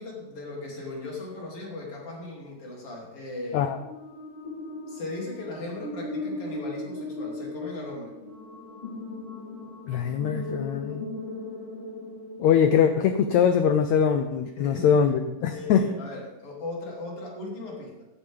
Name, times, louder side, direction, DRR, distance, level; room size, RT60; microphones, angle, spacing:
voice 1, 0.0-3.7 4.9-8.1 14.6-14.9 15.5-18.1, left 2 dB, 45° left, -2 dB, 3.5 m, -37 dB
sound 1, 3.7-13.1, left 2 dB, 15° left, 5.4 m, -38 dB
voice 2, 9.9-11.1 12.4-15.8, left 7 dB, 90° left, 8 dB, 1.5 m, -22 dB
14.5 x 10.0 x 3.5 m, 0.98 s
omnidirectional pair, 4.0 m